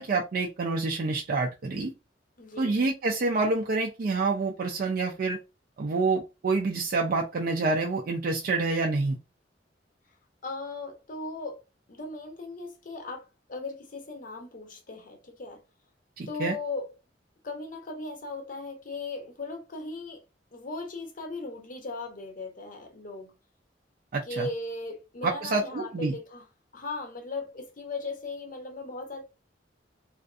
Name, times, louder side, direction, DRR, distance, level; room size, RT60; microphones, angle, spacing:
voice 1, 0.0-1.9 2.6-5.4 5.8-9.2 16.2-16.5 24.1-24.5 25.2-26.2, right 3 dB, 50° right, 0.4 m, -27 dB
voice 2, 2.4-2.8 10.4-15.6 16.3-16.9 17.4-20.2 20.5-23.3 24.3-26.4 26.7-29.2, left 3 dB, 50° left, 0.7 m, -37 dB
2.5 x 2.4 x 2.3 m
head